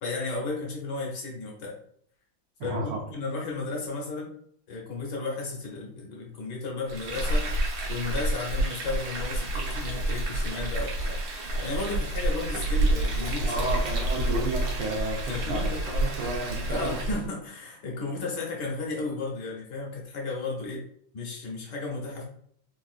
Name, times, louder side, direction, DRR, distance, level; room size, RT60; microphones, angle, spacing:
voice 1, 0.0-1.7 2.6-4.3 4.7-7.5 7.9-11.2 11.6-13.7 15.3-15.8 16.7-20.8 21.1-22.3, left 3 dB, 65° left, -2 dB, 1.3 m, -34 dB
voice 2, 2.6-3.0 13.5-17.0, right 2 dB, 85° right, 0 dB, 1.4 m, -32 dB
Frying (food), 6.9-17.2, right 1 dB, 70° right, 1.5 m, -29 dB
3.7 x 2.4 x 2.4 m, 0.65 s
omnidirectional pair, 2.3 m